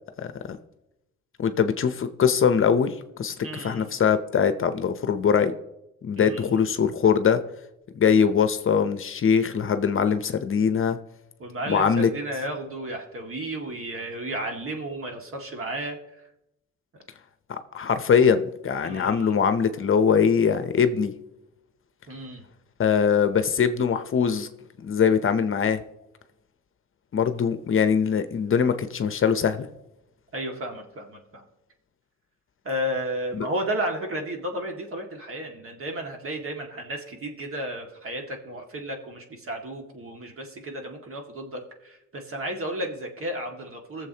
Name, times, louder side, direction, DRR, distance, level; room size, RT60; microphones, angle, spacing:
voice 1, 0.2-0.6 1.4-2.9 3.2-5.5 6.0-7.4 7.9-11.0 11.7-12.1 17.7-21.1 22.8-24.5 24.8-25.8 27.1-29.7 33.4-33.5, left 7 dB, 45° left, 10 dB, 0.7 m, -22 dB
voice 2, 3.4-3.9 6.2-6.6 11.4-16.0 18.8-19.4 22.1-22.4 30.3-31.4 32.6-44.1, right 1 dB, 45° right, 2 dB, 2.0 m, -33 dB
20.5 x 7.2 x 2.9 m, 0.89 s
cardioid pair, 90°, 30 cm